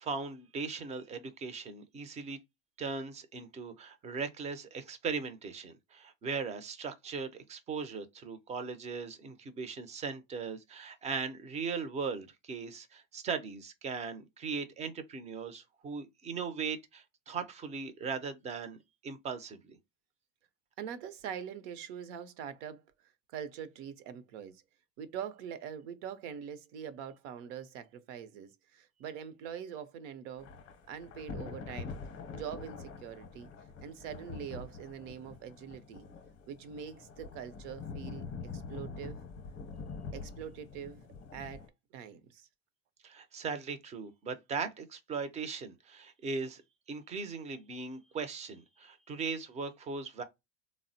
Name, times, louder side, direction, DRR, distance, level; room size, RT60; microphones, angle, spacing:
voice 1, 0.0-2.4 2.8-18.8 19.0-19.8 43.0-46.6 46.9-50.2, right 5 dB, 20° right, 0.4 m, -38 dB
voice 2, 20.8-22.8 23.3-24.6 25.0-30.5 30.9-31.9 32.3-33.5 33.8-36.1 36.5-38.2 38.5-39.2 40.1-41.0 41.3-41.7 41.9-42.5, right 8 dB, 75° right, 0.7 m, -43 dB
Thunder / Rain, 30.4-41.7, left 4 dB, 35° left, 0.6 m, -45 dB
3.5 x 2.0 x 2.6 m
supercardioid pair, 135°, 37 cm